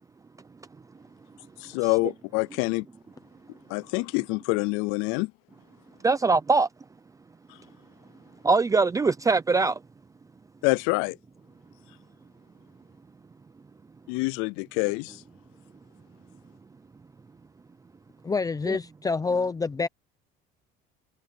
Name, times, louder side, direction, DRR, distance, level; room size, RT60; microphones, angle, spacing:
voice 1, 1.6-2.9 3.7-5.3 10.6-11.2 14.1-15.2, left 28 dB, 85° left, 0.4 m, -26 dB
voice 2, 6.0-6.7 8.4-9.8 18.7-18.8, right 4 dB, 15° right, 0.7 m, -22 dB
voice 3, 18.3-19.9, left 4 dB, 15° left, 0.8 m, -27 dB
cardioid pair, 125°, 21 cm